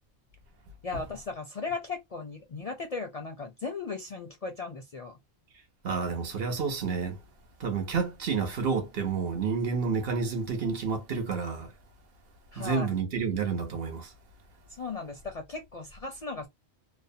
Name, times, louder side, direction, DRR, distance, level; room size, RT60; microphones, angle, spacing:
voice 1, 0.8-5.2 12.5-12.9 14.7-16.5, left 4 dB, 50° left, 0.5 m, -37 dB
voice 2, 5.8-7.2 7.6-11.7 12.6-14.1, right 5 dB, 60° right, 0.9 m, -30 dB
2.6 x 2.1 x 2.6 m
omnidirectional pair, 1.2 m